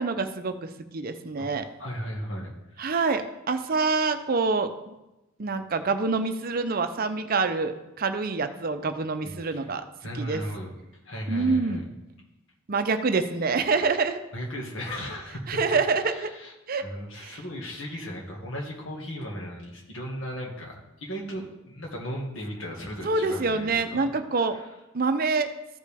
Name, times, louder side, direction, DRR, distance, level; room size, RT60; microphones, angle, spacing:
voice 1, 0.0-1.7 2.8-4.9 5.4-9.8 10.1-10.4 11.3-11.9 12.7-14.2 15.5-16.3 16.7-16.8 17.2-17.4 23.0-24.6 24.9-25.5, right 4 dB, 45° right, 8 dB, 0.6 m, -26 dB
voice 2, 1.8-3.1 9.2-9.6 10.0-10.7 11.0-11.8 14.3-15.6 16.1-16.5 16.8-24.1 24.5-24.6, equal, 65° left, -1 dB, 1.9 m, -36 dB
14.5 x 5.2 x 3.5 m, 0.96 s
head